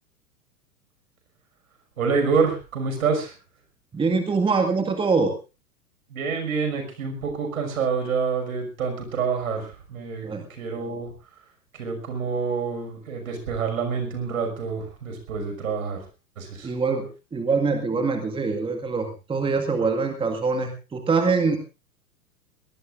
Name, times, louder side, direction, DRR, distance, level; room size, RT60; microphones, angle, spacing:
voice 1, 2.0-3.3 6.1-11.1 11.7-16.0 16.4-16.7, right 5 dB, 60° right, 5 dB, 6.1 m, -27 dB
voice 2, 3.9-5.3 10.2-10.4 16.6-21.6, right 4 dB, 10° right, 5 dB, 1.9 m, -24 dB
23.5 x 18.5 x 2.6 m, 0.32 s
figure-of-eight pair, 95°, 46 cm